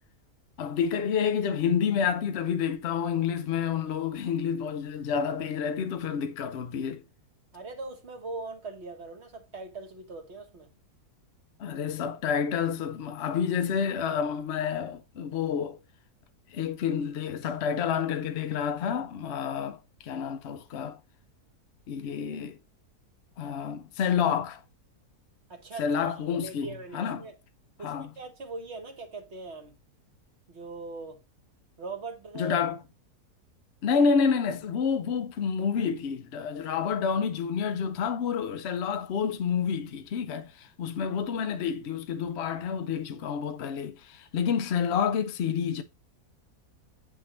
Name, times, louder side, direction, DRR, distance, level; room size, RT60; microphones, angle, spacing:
voice 1, 0.6-7.0 11.6-15.8 16.5-21.0 21.9-22.6 23.4-24.6 25.8-27.2 27.8-28.1 32.3-32.8 33.8-45.8, left 7 dB, 55° left, 0.8 m, -29 dB
voice 2, 7.5-10.7 25.5-27.3 27.8-29.7 30.5-31.2 31.8-32.6, right 3 dB, 45° right, 1.3 m, -40 dB
8.9 x 3.7 x 3.0 m
omnidirectional pair, 1.7 m